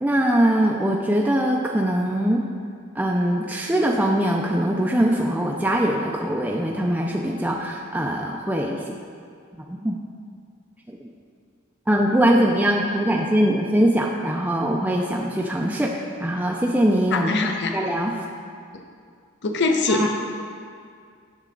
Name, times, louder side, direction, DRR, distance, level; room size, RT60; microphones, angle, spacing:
voice 1, 0.0-2.4 3.0-9.0 9.7-10.0 10.9-11.1 11.9-18.2 19.9-20.1, right 1 dB, 10° right, -1 dB, 0.4 m, -22 dB
voice 2, 17.1-17.7 19.4-20.1, left 3 dB, 55° left, 4 dB, 0.7 m, -22 dB
9.1 x 6.6 x 3.8 m, 2.2 s
head